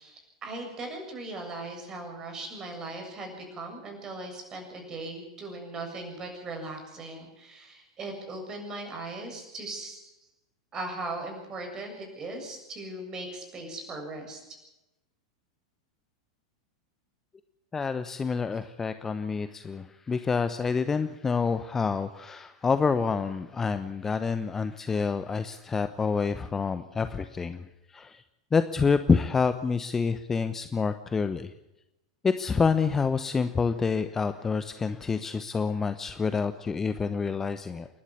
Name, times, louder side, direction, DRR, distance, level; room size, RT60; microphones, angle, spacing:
voice 1, 0.0-10.1 10.7-14.4, right 2 dB, 25° right, 3 dB, 7.4 m, -39 dB
voice 2, 17.7-28.2 28.5-31.5 32.2-37.9, left 5 dB, 15° left, 11 dB, 0.9 m, -27 dB
28.5 x 12.0 x 8.4 m, 0.93 s
figure-of-eight pair, 90°, 2 cm